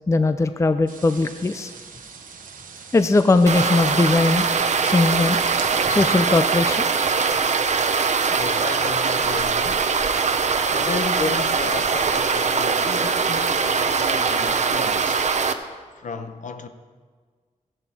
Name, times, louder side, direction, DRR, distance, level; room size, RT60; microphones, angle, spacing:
voice 1, 0.1-1.7 2.9-4.5 4.8-5.4 5.9-6.9, left 3 dB, 20° left, 0.5 m, -19 dB
sound 1, 0.9-6.0, right 5 dB, 80° right, 1.1 m, -40 dB
sound 2, 3.5-15.5, right 5 dB, 60° right, 0.7 m, -22 dB
voice 2, 8.3-10.0 10.7-15.3 16.0-16.7, left 5 dB, 65° left, 0.9 m, -33 dB
15.5 x 11.0 x 4.4 m
wide cardioid pair, 120°, 14 cm